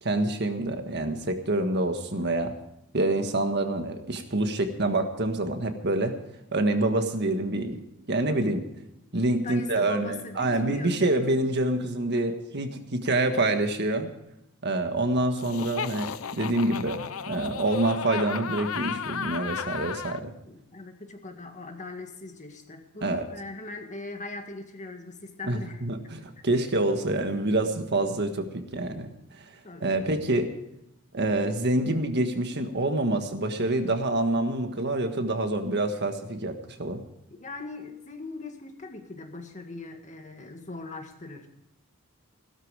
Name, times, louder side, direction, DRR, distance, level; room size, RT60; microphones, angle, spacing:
voice 1, 0.0-2.5 2.9-6.1 6.5-7.8 8.1-8.6 9.1-14.1 14.6-20.3 23.0-23.2 25.5-29.1 29.4-29.5 29.8-30.5 31.1-37.0, right 2 dB, 50° right, 6 dB, 1.6 m, -26 dB
voice 2, 9.4-11.4 20.4-25.9 28.4-28.9 29.6-30.3 37.3-41.5, left 3 dB, 35° left, 5 dB, 1.8 m, -41 dB
Laughter, 15.4-20.2, left 7 dB, 75° left, 0.7 m, -34 dB
16.5 x 13.0 x 4.9 m, 0.85 s
head